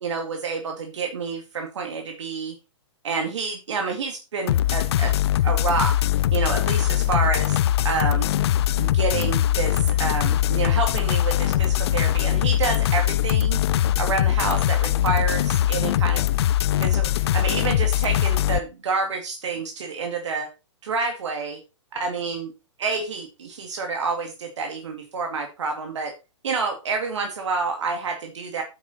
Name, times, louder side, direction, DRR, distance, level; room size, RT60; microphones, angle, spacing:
voice 1, 0.0-2.5 3.0-5.1 5.4-6.0 6.3-7.6 7.8-8.3 8.8-13.6 14.0-16.2 16.8-20.5 20.8-21.6 22.0-22.5 22.8-26.1 26.4-28.6, right 4 dB, 70° right, 4 dB, 2.2 m, -28 dB
sound 1, 4.5-18.6, left 12 dB, 60° left, 0.5 m, -21 dB
9.3 x 8.9 x 4.2 m, 0.30 s
hypercardioid pair, 120°, 16 cm